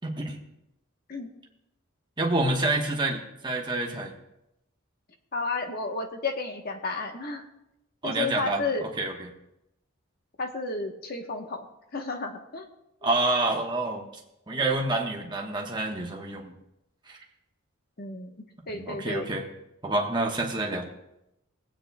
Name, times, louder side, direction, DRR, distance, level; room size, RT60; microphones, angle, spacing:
voice 1, 0.0-0.4 2.2-4.1 8.0-9.3 13.0-14.1 14.5-16.5 17.1-17.2 18.7-19.4 19.8-20.9, right 2 dB, 20° right, 1 dB, 1.2 m, -28 dB
voice 2, 5.3-7.4 8.0-8.8 10.4-11.6 11.9-12.7 14.6-14.7 18.0-18.3 18.7-19.3, left 3 dB, 45° left, 4 dB, 1.1 m, -32 dB
20.0 x 8.7 x 2.3 m, 0.86 s
head